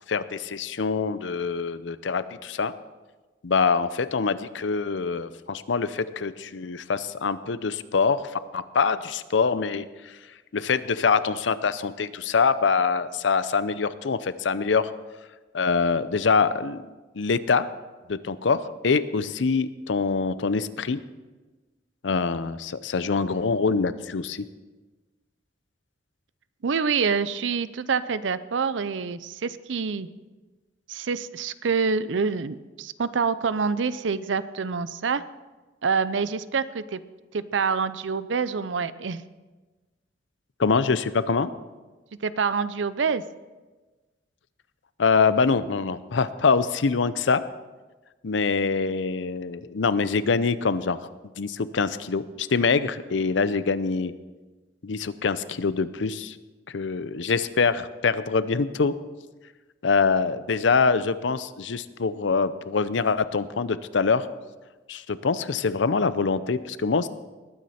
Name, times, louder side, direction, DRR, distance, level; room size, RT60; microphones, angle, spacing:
voice 1, 0.1-2.7 3.4-10.1 10.5-14.9 15.5-16.8 17.1-17.7 18.1-21.0 22.0-24.4 40.6-41.5 45.0-47.4 48.2-51.1 51.4-54.1 54.8-56.4 56.7-58.9 59.8-64.3 64.9-67.1, left 5 dB, 80° left, 15 dB, 0.6 m, -24 dB
voice 2, 26.6-30.1 30.9-35.2 35.8-37.0 37.3-39.2 42.2-43.2, right 5 dB, 90° right, 15 dB, 0.6 m, -26 dB
20.0 x 9.4 x 4.3 m, 1.2 s
head